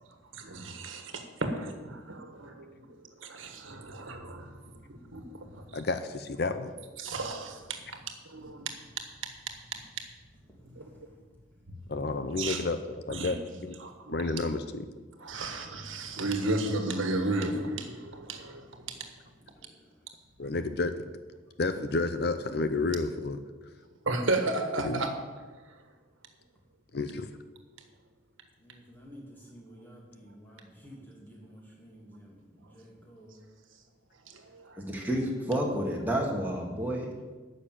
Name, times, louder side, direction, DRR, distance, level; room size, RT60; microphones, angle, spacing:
voice 1, 0.3-2.8 3.2-5.8 7.0-8.0 8.2-8.7 10.6-10.9 12.4-12.6 13.1-13.3 13.8-14.2 15.2-19.1 24.0-25.2 34.3-34.8, right 2 dB, 85° right, 6 dB, 1.5 m, -34 dB
voice 2, 5.7-6.8 11.9-13.4 13.6-13.8 14.1-14.9 20.4-21.0 21.6-23.4 24.8-25.0 26.9-27.3, left 3 dB, 50° left, 9 dB, 0.6 m, -30 dB
voice 3, 19.4-19.9 28.6-33.4, equal, 10° left, -4 dB, 2.7 m, -52 dB
voice 4, 34.8-37.1, right 1 dB, 10° right, -2 dB, 1.8 m, -30 dB
10.0 x 6.6 x 9.0 m, 1.3 s
head